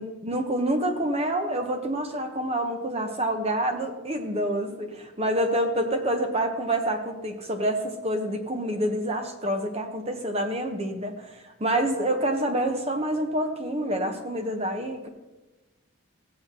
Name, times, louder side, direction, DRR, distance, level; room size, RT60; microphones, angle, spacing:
voice 1, 0.0-15.1, right 1 dB, 30° right, 5 dB, 1.0 m, -27 dB
16.0 x 8.1 x 2.9 m, 1.1 s
head